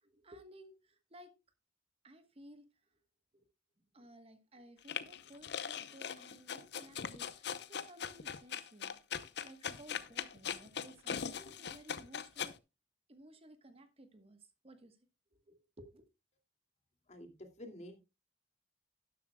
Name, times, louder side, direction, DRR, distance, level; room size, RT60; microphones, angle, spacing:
voice 1, 0.0-1.3 2.0-2.7 3.3-3.5 3.9-12.5 13.1-15.0 15.4-16.0, right 1 dB, 35° right, 1.3 m, -57 dB
sound 1, 4.9-12.5, left 7 dB, 65° left, 0.8 m, -40 dB
voice 2, 17.1-18.0, left 1 dB, 40° left, 2.6 m, -49 dB
12.5 x 11.0 x 2.3 m
head